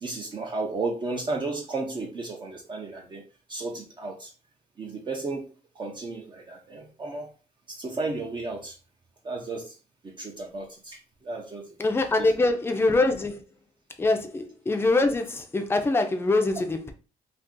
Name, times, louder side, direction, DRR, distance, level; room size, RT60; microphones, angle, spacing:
voice 1, 0.0-3.2 3.5-4.3 4.8-5.5 5.8-7.3 7.7-8.8 9.2-9.7 10.0-11.7 12.2-12.3, right 3 dB, 30° right, 0.6 m, -33 dB
voice 2, 11.8-13.4 14.0-16.9, left 2 dB, 15° left, 0.5 m, -24 dB
2.6 x 2.4 x 3.6 m
cardioid pair, 100°, 15 cm